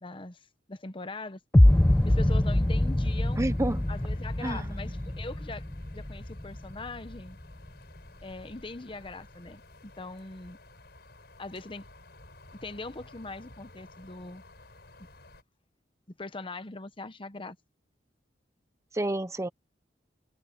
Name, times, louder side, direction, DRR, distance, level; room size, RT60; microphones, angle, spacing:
voice 1, 0.0-1.4 2.0-3.4 3.9-5.7 5.9-7.4 8.2-10.6 11.4-11.8 12.6-14.4 16.2-17.6, left 3 dB, 30° left, 0.9 m, -41 dB
sound 1, 1.5-7.5, left 1 dB, 10° left, 0.4 m, -24 dB
sound 2, 1.7-15.4, left 2 dB, 60° left, 6.9 m, -52 dB
voice 2, 3.4-3.9 4.4-5.0 18.9-19.5, right 1 dB, 15° right, 0.9 m, -30 dB
head